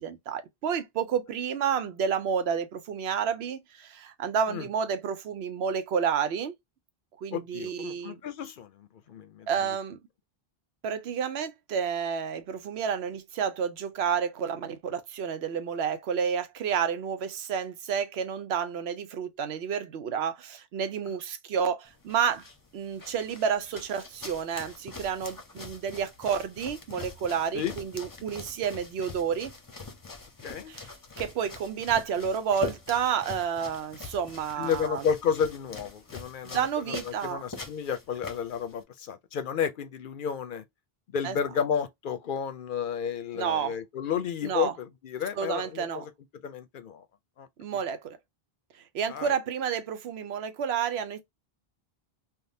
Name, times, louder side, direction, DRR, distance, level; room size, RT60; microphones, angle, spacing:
voice 1, 0.0-6.5 7.2-8.2 9.5-10.0 10.8-22.4 22.7-29.5 30.7-30.9 31.2-35.0 36.4-37.4 41.2-41.4 43.3-43.7 44.4-44.7 45.4-46.0 47.6-48.2 48.9-51.2, right 7 dB, 90° right, 0.9 m, -30 dB
voice 2, 7.3-9.7 27.5-27.8 30.4-30.7 34.6-36.6 36.9-40.6 41.1-46.1 46.4-47.0 47.4-47.8 49.1-49.3, left 7 dB, 65° left, 0.7 m, -32 dB
sound 1, 21.8-38.8, left 3 dB, 25° left, 0.6 m, -44 dB
3.5 x 2.3 x 2.7 m
omnidirectional pair, 1.0 m